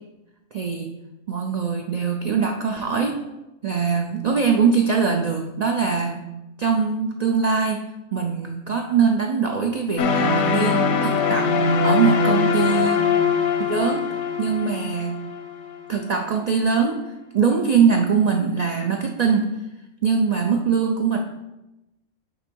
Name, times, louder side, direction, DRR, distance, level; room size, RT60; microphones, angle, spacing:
voice 1, 0.5-0.9 1.3-3.2 3.6-6.3 6.6-7.8 8.1-13.0 13.7-14.1 14.4-15.2 15.9-17.0 17.3-19.5 20.0-21.2, right 6 dB, 65° right, 2 dB, 0.4 m, -22 dB
sound 1, 10.0-15.9, left 5 dB, 85° left, 1.2 m, -22 dB
6.5 x 5.1 x 4.5 m, 0.99 s
omnidirectional pair, 1.4 m